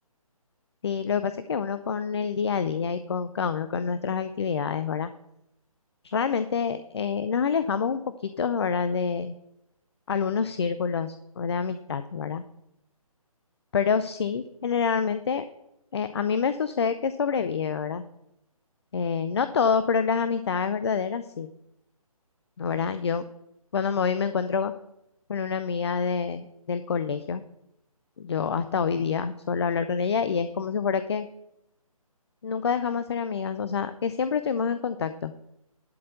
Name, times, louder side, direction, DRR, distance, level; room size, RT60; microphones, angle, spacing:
voice 1, 0.8-5.1 6.0-9.3 10.1-12.4 13.7-15.4 15.9-18.0 18.9-21.5 22.6-23.2 23.7-24.7 25.3-27.4 28.2-31.3 32.4-35.3, left 6 dB, 45° left, 12 dB, 0.5 m, -27 dB
11.5 x 4.3 x 8.1 m, 0.84 s
figure-of-eight pair, 150°, 19 cm